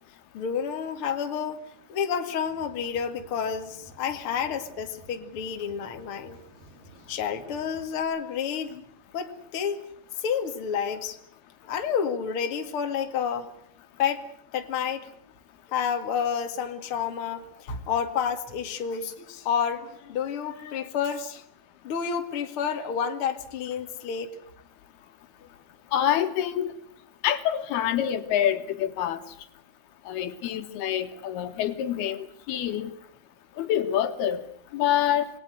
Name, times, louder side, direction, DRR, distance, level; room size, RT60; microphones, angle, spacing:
voice 1, 0.3-1.6 1.9-6.4 7.1-8.8 9.1-9.8 10.2-11.2 11.6-13.5 14.0-14.2 14.5-15.1 15.7-21.4 21.8-24.4, left 7 dB, 40° left, 6 dB, 2.5 m, -29 dB
sound 1, 2.4-8.0, right 2 dB, 75° right, 8.4 m, -53 dB
voice 2, 25.9-26.7 27.2-29.2 30.1-32.9 33.6-34.4 34.7-35.3, left 10 dB, 80° left, 8 dB, 3.5 m, -26 dB
27.0 x 20.5 x 7.9 m, 0.68 s
omnidirectional pair, 4.5 m